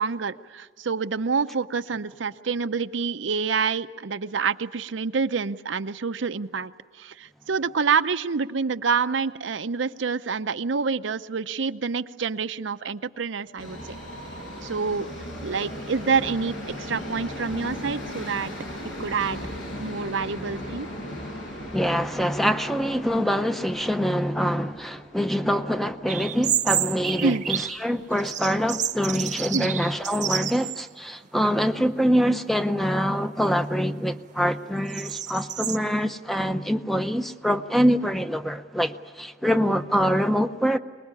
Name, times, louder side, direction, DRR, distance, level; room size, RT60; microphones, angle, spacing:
voice 1, 0.0-6.7 7.0-14.0 14.6-15.1 15.4-18.5 19.0-19.4 19.8-20.9 27.2-27.4 29.5-29.7, right 5 dB, 80° right, 11 dB, 0.6 m, -27 dB
Subway metro underground, 13.6-27.7 28.0-28.1 28.9-29.0 29.3-29.4 30.0-30.1, equal, 80° left, 7.0 m, -38 dB
voice 2, 21.7-40.8, equal, ahead, 9 dB, 0.6 m, -24 dB
sound 1, 26.1-27.8 28.2-30.9 31.2-31.3 32.1-32.5 33.0-35.8, right 10 dB, 40° right, 0.8 m, -30 dB
24.5 x 20.5 x 9.7 m, 1.5 s
head